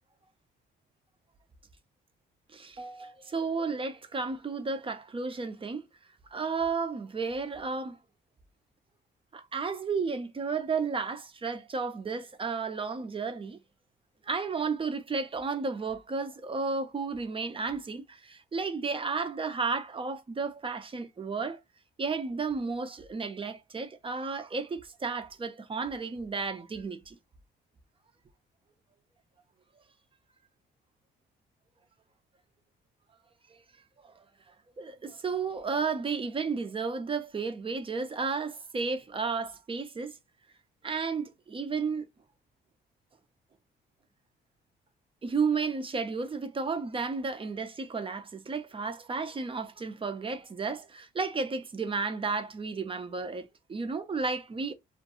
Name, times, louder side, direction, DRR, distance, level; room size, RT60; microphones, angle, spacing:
voice 1, 2.5-5.8 6.3-8.0 9.3-13.6 14.3-21.6 22.0-27.2 34.0-34.1 34.8-40.1 40.8-42.1 45.2-54.7, right 4 dB, 25° right, 0.5 m, -33 dB
2.5 x 2.2 x 2.9 m
cardioid pair, 90°, 20 cm